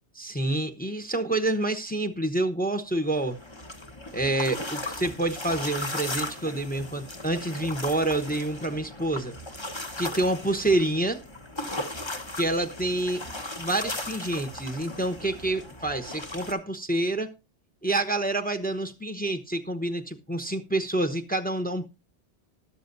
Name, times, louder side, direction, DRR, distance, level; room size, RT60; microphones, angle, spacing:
voice 1, 0.1-3.4 4.1-9.4 10.0-11.2 12.4-13.2 13.6-17.3 17.8-21.9, right 2 dB, 10° left, 0.9 m, -28 dB
sound 1, 2.9-16.5, left 1 dB, 25° left, 1.3 m, -37 dB
13.5 x 11.5 x 2.6 m
omnidirectional pair, 1.2 m